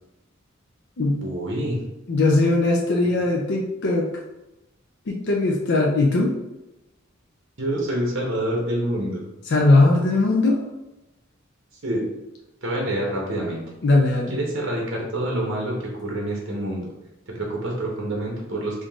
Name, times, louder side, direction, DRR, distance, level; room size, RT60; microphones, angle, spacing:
voice 1, 1.2-1.8 7.6-9.3 11.8-12.1 12.6-13.6 14.3-16.9 17.3-18.9, right 1 dB, 65° right, -1 dB, 1.0 m, -27 dB
voice 2, 2.1-4.1 5.1-6.3 9.5-10.6 13.8-14.4, left 2 dB, 60° left, -1 dB, 0.5 m, -19 dB
3.7 x 2.6 x 3.5 m, 0.96 s
head